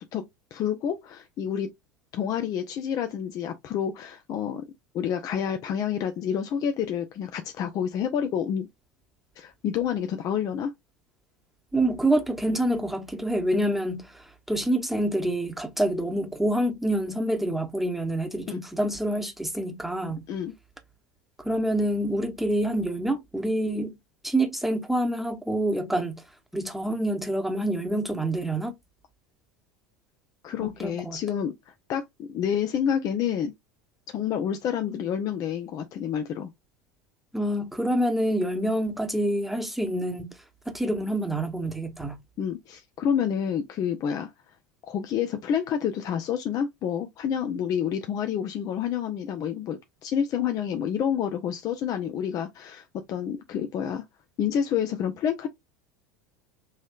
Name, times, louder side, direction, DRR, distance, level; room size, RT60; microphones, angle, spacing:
voice 1, 0.5-1.7 2.1-4.6 4.9-8.7 9.4-10.7 18.5-18.6 20.3-20.5 30.4-31.5 31.9-33.5 34.1-36.5 42.4-44.3 44.9-54.0 54.4-55.5, left 8 dB, 40° left, 0.6 m, -28 dB
voice 2, 11.7-20.2 21.4-24.0 24.2-26.1 26.5-28.7 30.6-31.2 37.3-40.3 40.7-42.2, right 1 dB, ahead, 1.1 m, -27 dB
5.5 x 3.1 x 2.4 m
figure-of-eight pair, 75°, 10 cm